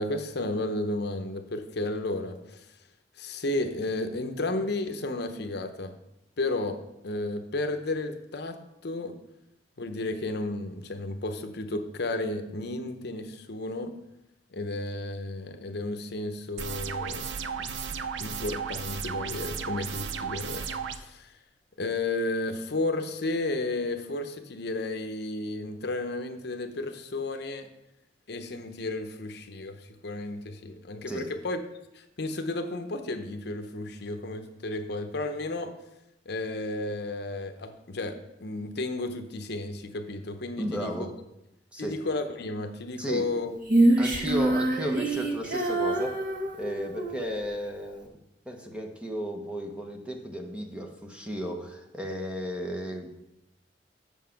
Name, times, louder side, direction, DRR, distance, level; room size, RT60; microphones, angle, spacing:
voice 1, 0.0-2.7 3.2-5.9 6.4-6.8 7.0-8.6 8.8-9.1 9.8-13.9 14.5-17.3 17.7-17.8 18.2-21.3 21.8-27.7 28.3-31.6 31.9-35.7 36.3-40.9 41.8-43.5, left 2 dB, 65° left, 7 dB, 0.8 m, -33 dB
sound 1, 16.6-21.0, right 6 dB, 85° right, 0.6 m, -34 dB
voice 2, 40.6-41.1 41.7-42.0 43.0-43.3 44.0-46.2 46.5-48.2 48.5-53.2, equal, 5° right, 2 dB, 1.0 m, -34 dB
Female singing, 43.7-47.2, right 2 dB, 50° right, 1.4 m, -25 dB
7.4 x 6.4 x 5.8 m, 0.88 s
head